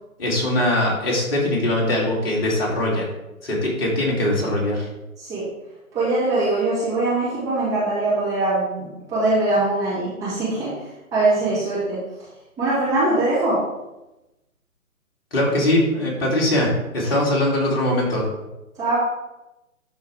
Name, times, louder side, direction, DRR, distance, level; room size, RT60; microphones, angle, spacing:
voice 1, 0.2-3.1 3.4-4.9 15.3-18.3, left 1 dB, 40° left, -3 dB, 2.8 m, -21 dB
voice 2, 5.9-10.7 11.1-12.0 12.6-13.6 18.8-19.0, right 2 dB, 10° right, -11 dB, 1.9 m, -22 dB
12.0 x 4.5 x 3.5 m, 0.99 s
figure-of-eight pair, 145°, 43 cm